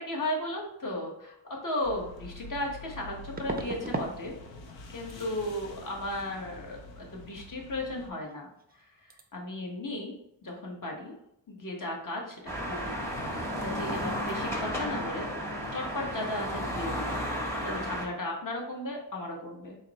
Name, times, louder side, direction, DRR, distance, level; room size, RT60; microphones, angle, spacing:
voice 1, 0.1-4.3 4.9-8.5 8.7-8.9 9.3-10.1 10.4-11.1 11.5-15.3 15.7-17.1 17.6-19.7, left 1 dB, 45° left, -1 dB, 1.0 m, -35 dB
sound 1, 1.8-8.1, left 2 dB, 90° left, 0.6 m, -47 dB
sound 2, 1.8-1.9 3.4-4.2 4.4-4.8 5.1-5.3 8.2-8.3 8.6-8.8 9.1-9.2, right 3 dB, 25° right, 0.4 m, -36 dB
sound 3, 12.5-18.1, equal, 5° left, 0.8 m, -33 dB
4.0 x 2.0 x 4.0 m, 0.79 s
cardioid pair, 70°, 43 cm